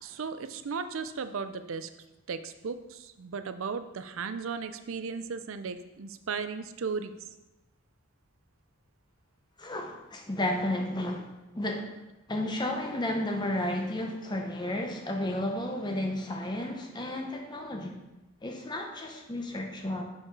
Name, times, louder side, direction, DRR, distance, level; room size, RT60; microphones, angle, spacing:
voice 1, 0.0-1.9 2.3-7.1, right 5 dB, 65° right, 10 dB, 0.5 m, -36 dB
voice 2, 9.6-11.3 11.5-12.0 12.3-17.9 18.4-20.0, left 1 dB, 20° left, 3 dB, 0.7 m, -32 dB
5.7 x 5.4 x 4.7 m, 0.99 s
head